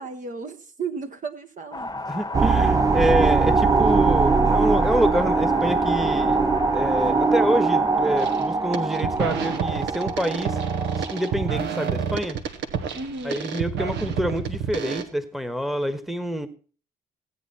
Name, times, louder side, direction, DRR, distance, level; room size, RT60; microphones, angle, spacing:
voice 1, 0.0-1.9 12.9-13.4, right 4 dB, 45° right, 7 dB, 1.3 m, -34 dB
sound 1, 1.7-8.4, left 2 dB, 20° left, 1.1 m, -33 dB
voice 2, 2.1-6.4 6.7-10.6 11.0-12.4 13.2-16.5, equal, ahead, 12 dB, 1.3 m, -27 dB
sound 2, 2.3-11.6, right 4 dB, 20° right, 0.5 m, -22 dB
sound 3, 8.2-8.4 8.7-15.0, right 7 dB, 70° right, 1.2 m, -29 dB
16.0 x 8.5 x 4.2 m, 0.39 s
hypercardioid pair, 50°, 19 cm